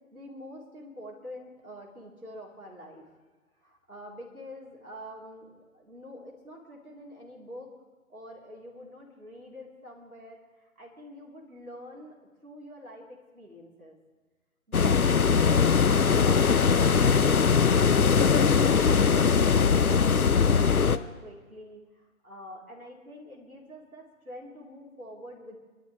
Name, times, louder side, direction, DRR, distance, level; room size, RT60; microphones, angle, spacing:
voice 1, 0.1-3.1 3.6-7.7 8.1-12.2 12.4-14.0 18.8-25.6, equal, 85° right, -2 dB, 4.0 m, -46 dB
sound 1, 14.7-21.0, left 6 dB, 80° left, 0.7 m, -21 dB
25.0 x 12.5 x 3.3 m, 1.3 s
figure-of-eight pair, 140°, 42 cm